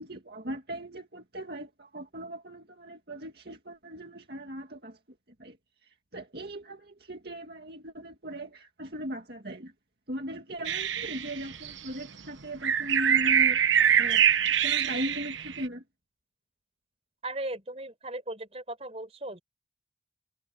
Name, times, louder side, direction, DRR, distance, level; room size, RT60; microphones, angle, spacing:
voice 1, 0.0-5.0 5.4-5.6 5.8-9.7 10.1-13.6 14.0-15.8, equal, 55° right, 2.2 m, -38 dB
sound 1, 10.6-11.9 12.6-15.6, right 8 dB, 80° right, 1.1 m, -24 dB
voice 2, 17.2-19.4, right 2 dB, 30° right, 4.5 m, -37 dB
head